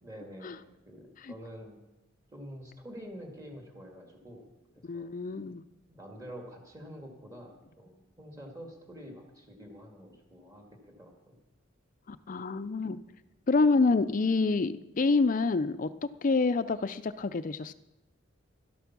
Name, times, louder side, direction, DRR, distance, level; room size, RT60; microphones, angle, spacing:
voice 1, 0.0-1.8 2.3-4.5 4.7-5.1 5.9-11.4, equal, 20° right, 1 dB, 2.1 m, -47 dB
voice 2, 4.8-5.6 12.1-13.0 13.5-17.7, left 3 dB, 45° left, 13 dB, 0.4 m, -27 dB
12.5 x 12.5 x 6.0 m, 1.0 s
head